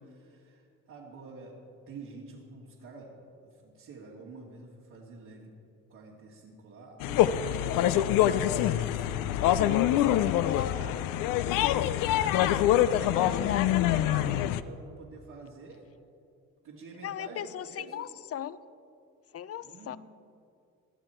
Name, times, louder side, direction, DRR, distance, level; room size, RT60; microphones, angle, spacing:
voice 1, 0.0-1.6 1.9-3.1 3.4-5.5 5.9-10.0 10.3-11.0 12.2-15.8 16.6-18.1 19.6-20.0, right 3 dB, 75° right, -5 dB, 2.4 m, -47 dB
sound 1, 7.0-14.6, left 12 dB, 85° left, 0.6 m, -25 dB
voice 2, 10.2-10.8 11.2-11.4 13.1-13.7 17.0-18.6 19.3-20.0, left 10 dB, 45° left, 16 dB, 0.6 m, -37 dB
19.0 x 12.0 x 4.5 m, 2.5 s
supercardioid pair, 70°, 32 cm